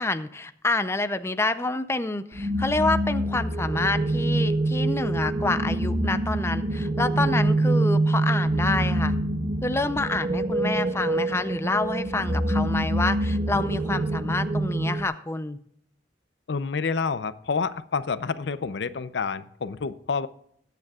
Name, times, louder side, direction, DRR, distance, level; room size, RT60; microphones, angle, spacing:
voice 1, 0.0-9.1 9.6-15.6, left 2 dB, 15° left, 11 dB, 0.5 m, -28 dB
sound 1, 2.3-15.0, right 1 dB, 35° right, 0.7 m, -25 dB
voice 2, 16.5-20.3, left 5 dB, 80° left, 14 dB, 0.6 m, -28 dB
21.5 x 9.2 x 2.4 m, 0.69 s
head